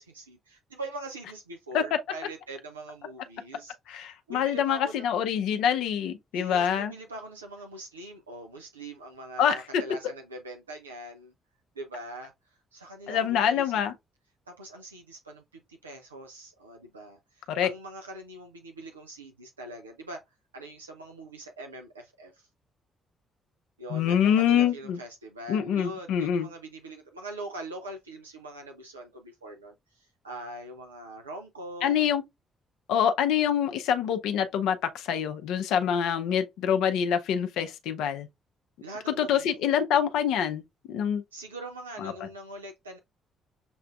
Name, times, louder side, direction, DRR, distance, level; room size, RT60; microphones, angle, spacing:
voice 1, 0.0-5.1 6.3-11.3 11.7-13.7 14.5-20.2 20.5-22.5 23.8-32.0 38.8-39.5 41.3-43.0, right 1 dB, 85° right, 0.4 m, -42 dB
voice 2, 3.9-6.9 9.4-9.8 13.1-13.9 17.5-17.7 23.9-25.0 25.5-26.5 31.8-32.2 32.9-38.3 39.2-40.6 40.9-41.2 42.0-42.1, left 8 dB, 65° left, 0.5 m, -25 dB
6.8 x 2.5 x 2.4 m
figure-of-eight pair, 40°, 0 cm